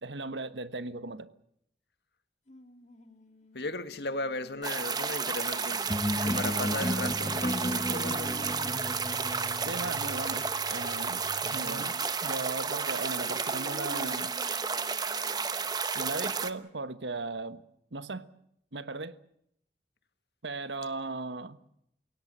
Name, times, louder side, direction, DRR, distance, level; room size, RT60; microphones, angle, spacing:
voice 1, 0.0-1.3 9.6-11.9 12.2-14.4 15.9-17.6 17.9-18.3 18.7-19.1 20.4-21.6, right 3 dB, 85° right, 1.3 m, -37 dB
sound 1, 2.5-12.1 12.5-15.6 16.1-16.2 16.4-16.5, left 1 dB, 40° left, 2.0 m, -48 dB
voice 2, 3.5-5.8 6.1-8.5, left 2 dB, 70° left, 1.8 m, -36 dB
sound 2, 4.6-16.5, right 5 dB, 20° right, 1.0 m, -32 dB
sound 3, 5.9-11.5, left 1 dB, 20° left, 1.2 m, -35 dB
29.0 x 17.0 x 7.5 m
head